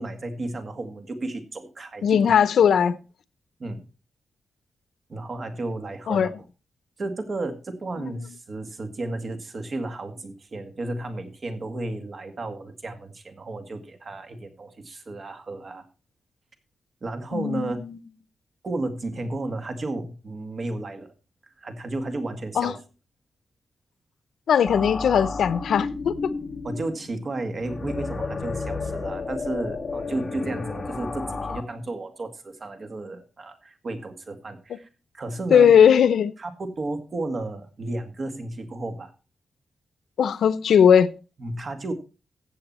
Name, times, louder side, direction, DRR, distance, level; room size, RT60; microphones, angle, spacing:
voice 1, 0.0-2.3 3.6-3.8 5.1-6.3 7.0-15.9 17.0-17.8 18.6-21.1 21.6-22.8 26.6-34.9 35.1-35.7 36.4-39.1 41.4-41.9, right 2 dB, 40° right, 2.0 m, -33 dB
voice 2, 2.0-3.0 6.1-6.3 8.0-8.1 17.3-18.0 22.5-22.7 24.5-26.1 35.5-36.3 40.2-41.1, left 8 dB, 80° left, 0.7 m, -18 dB
sound 1, 24.7-31.6, left 4 dB, 30° left, 1.6 m, -32 dB
15.0 x 7.8 x 4.3 m
wide cardioid pair, 140°, 0 cm